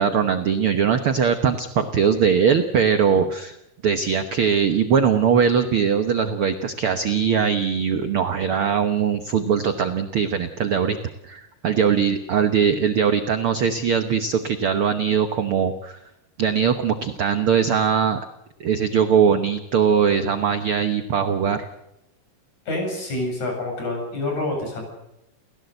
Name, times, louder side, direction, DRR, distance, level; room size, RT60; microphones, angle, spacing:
voice 1, 0.0-3.6 3.8-11.0 11.2-16.0 16.4-18.2 18.6-21.7, right 7 dB, 60° right, 8 dB, 1.4 m, -21 dB
voice 2, 22.7-24.9, left 2 dB, 60° left, 2 dB, 9.1 m, -27 dB
29.5 x 16.0 x 8.0 m, 0.87 s
omnidirectional pair, 3.8 m